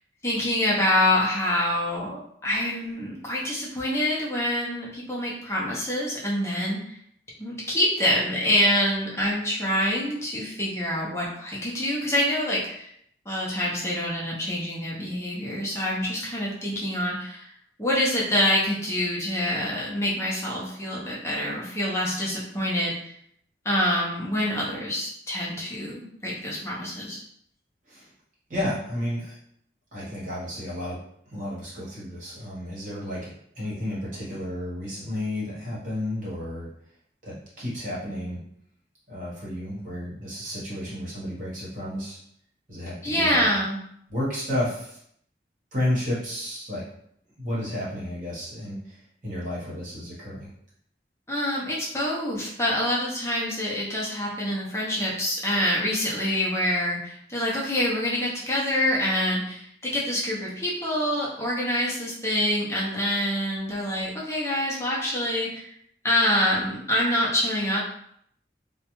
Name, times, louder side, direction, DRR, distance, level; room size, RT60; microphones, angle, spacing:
voice 1, 0.2-7.0 7.4-12.9 13.3-17.5 17.8-22.9 23.6-27.2 43.0-43.8 51.3-65.7 66.0-67.8, left 1 dB, 15° left, -5 dB, 0.5 m, -26 dB
voice 2, 28.5-29.3 29.9-31.0 31.3-36.7 37.2-38.4 39.1-42.2 42.7-43.5 44.1-45.0 45.7-46.8 47.4-50.5, left 1 dB, 45° right, -7 dB, 1.1 m, -32 dB
2.4 x 2.1 x 2.9 m, 0.69 s
head